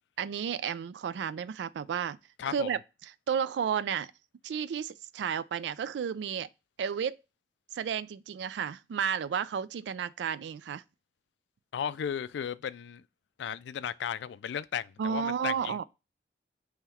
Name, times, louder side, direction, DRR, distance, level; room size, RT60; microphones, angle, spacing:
voice 1, 0.2-2.2 2.5-4.1 4.4-6.5 6.8-7.2 7.7-10.8 15.0-15.8, right 7 dB, 85° right, 0.3 m, -32 dB
voice 2, 2.4-2.7 11.7-13.0 13.4-15.8, left 8 dB, 85° left, 0.3 m, -35 dB
3.8 x 3.0 x 4.2 m
head